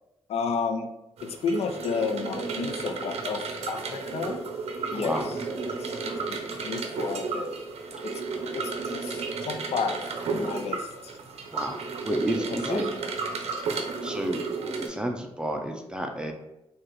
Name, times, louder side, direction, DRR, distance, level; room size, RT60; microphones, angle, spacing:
voice 1, 0.3-0.9 1.2-4.4 4.9-5.1 5.7-7.5 8.0-8.2 8.5-11.2 12.7-12.8, left 5 dB, 80° left, 6 dB, 0.5 m, -32 dB
sound 1, 1.2-14.9, right 4 dB, 85° right, 0.6 m, -33 dB
voice 2, 4.9-5.2 8.3-8.4 11.5-11.8 12.0-12.9 14.0-14.4 14.8-16.3, right 1 dB, 10° right, 3 dB, 0.4 m, -30 dB
4.8 x 2.4 x 3.0 m, 0.89 s
wide cardioid pair, 115°, 10 cm